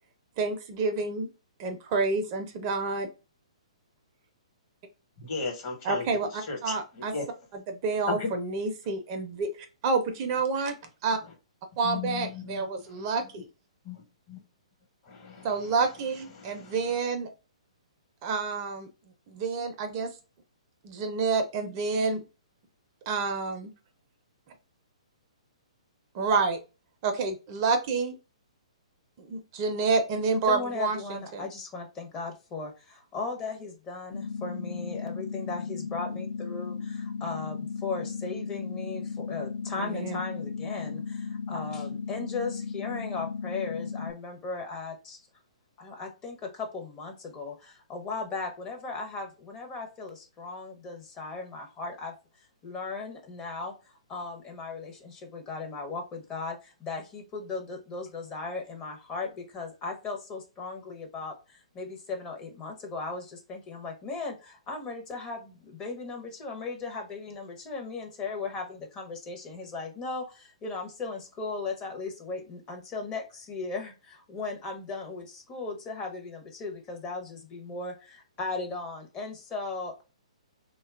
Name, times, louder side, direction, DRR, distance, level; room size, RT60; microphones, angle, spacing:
voice 1, 0.4-1.3 1.6-3.1 5.8-7.1 7.7-9.5 9.8-10.8 11.0-11.2 11.8-13.5 15.4-17.3 18.2-18.9 19.3-20.1 20.8-22.2 23.1-23.7 26.2-26.6 27.0-28.1 29.2-31.5 39.8-40.2, right 4 dB, 35° right, 6 dB, 0.5 m, -28 dB
voice 2, 5.2-6.1 6.4-7.3 8.1-8.3 11.8-13.1 13.8-14.4 15.0-15.7 16.3-16.9, left 5 dB, 40° left, 2 dB, 1.1 m, -36 dB
voice 3, 30.4-45.2 45.8-52.1 52.6-53.7 54.1-80.0, left 3 dB, 20° left, 2 dB, 0.7 m, -37 dB
sound 1, 34.1-44.1, left 5 dB, 75° left, 0.3 m, -35 dB
3.1 x 2.2 x 2.3 m, 0.31 s
figure-of-eight pair, 125°, 4 cm